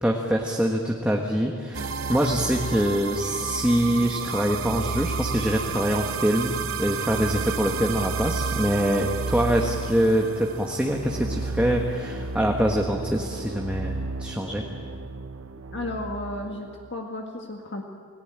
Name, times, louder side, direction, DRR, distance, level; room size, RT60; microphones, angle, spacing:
voice 1, 0.0-14.7, equal, 5° right, 0 dB, 1.5 m, -24 dB
sound 1, 1.7-16.9, right 4 dB, 65° right, 0.8 m, -31 dB
voice 2, 15.7-17.8, left 2 dB, 55° left, 1 dB, 1.9 m, -33 dB
29.0 x 18.5 x 8.9 m, 2.1 s
head